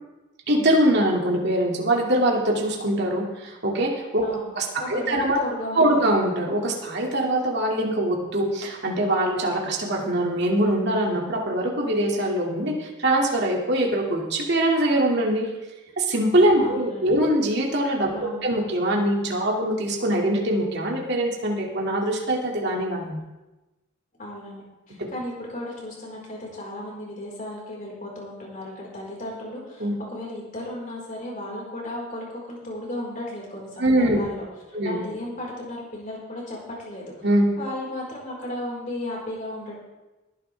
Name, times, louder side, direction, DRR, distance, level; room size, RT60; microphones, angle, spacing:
voice 1, 0.5-4.2 4.6-5.4 5.7-15.5 16.0-18.1 18.4-23.2 29.8-29.9 33.8-34.2 34.7-35.0 37.2-37.5, right 1 dB, 55° right, -1 dB, 2.4 m, -23 dB
voice 2, 4.2-4.5 4.8-6.0 16.6-17.1 18.1-18.5 24.2-37.0 37.6-39.7, left 1 dB, 40° left, -4 dB, 4.6 m, -35 dB
19.5 x 10.5 x 3.4 m, 1.1 s
head